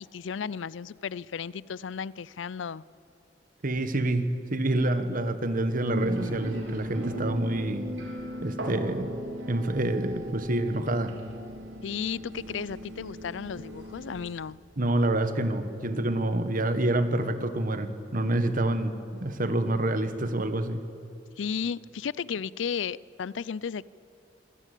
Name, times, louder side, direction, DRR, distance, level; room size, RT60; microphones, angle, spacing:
voice 1, 0.0-2.8 11.8-14.6 21.4-23.8, left 6 dB, 75° left, 22 dB, 0.5 m, -34 dB
voice 2, 3.6-7.9 8.4-9.1 9.5-11.1 14.8-20.8, right 1 dB, 50° right, 10 dB, 1.4 m, -27 dB
sound 1, 5.9-14.3, equal, 80° right, 3.5 m, -37 dB
25.5 x 17.5 x 8.4 m, 2.7 s
head